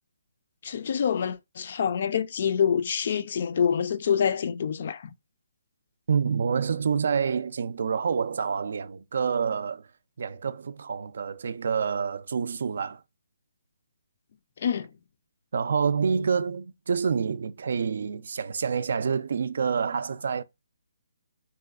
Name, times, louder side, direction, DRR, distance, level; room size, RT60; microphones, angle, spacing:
voice 1, 0.6-5.1 14.6-14.9, left 7 dB, 50° left, 0.3 m, -26 dB
voice 2, 6.1-9.9 10.2-13.0 15.5-20.4, right 6 dB, 65° right, 0.3 m, -27 dB
3.2 x 2.9 x 2.3 m
hypercardioid pair, 160°, 0 cm